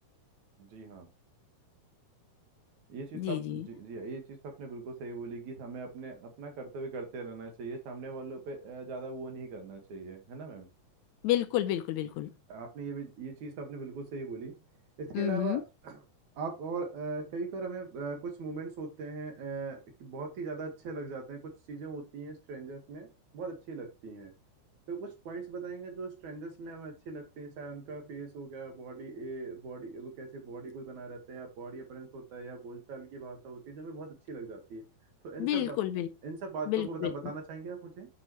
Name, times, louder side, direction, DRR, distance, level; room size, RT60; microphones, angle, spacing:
voice 1, 0.6-1.1 2.9-10.7 12.5-14.6 15.0-16.0 16.4-21.4 21.7-23.1 23.3-24.3 24.9-34.8 35.2-35.8 36.2-38.1, right 4 dB, 70° right, 2.8 m, -40 dB
voice 2, 3.1-3.6 11.2-12.3 15.1-15.6 35.4-36.1 36.7-37.1, left 13 dB, 80° left, 1.8 m, -30 dB
8.7 x 6.3 x 3.0 m
omnidirectional pair, 3.7 m